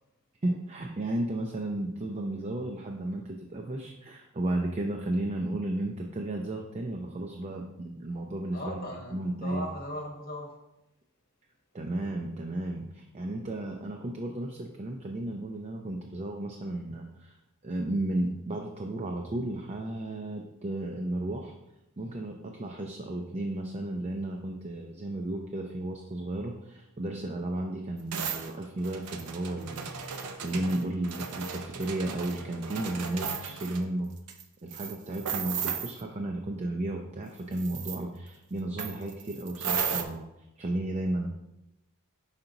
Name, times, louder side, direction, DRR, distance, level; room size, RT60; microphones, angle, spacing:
voice 1, 0.4-8.8 9.1-9.6 11.7-17.4 17.6-21.5 22.0-34.1 34.6-40.2 40.6-41.3, right 1 dB, 30° right, 2 dB, 0.4 m, -33 dB
voice 2, 8.5-10.6, equal, 40° left, 1 dB, 1.2 m, -38 dB
sound 1, 28.1-33.8 34.3-34.4 34.7-36.0 37.5-38.0 38.8-40.0, right 6 dB, 85° right, 0.6 m, -35 dB
5.8 x 4.8 x 3.9 m, 0.92 s
head